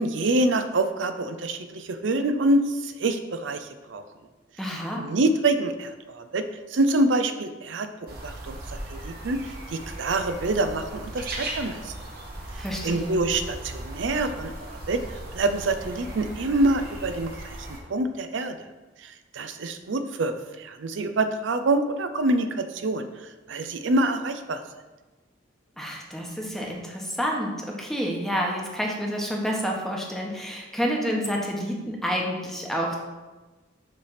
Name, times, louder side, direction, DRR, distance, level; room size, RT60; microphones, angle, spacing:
voice 1, 0.0-4.0 4.9-6.5 6.7-7.9 8.2-11.9 12.8-15.0 15.3-17.6 17.9-18.6 19.0-23.1 23.5-24.6, right 2 dB, 80° right, 9 dB, 0.5 m, -26 dB
voice 2, 4.6-5.1 12.6-13.2 25.8-33.0, equal, ahead, -1 dB, 1.0 m, -29 dB
sound 1, 8.1-17.8, right 1 dB, 55° right, 1.2 m, -38 dB
6.6 x 3.3 x 5.7 m, 1.2 s
head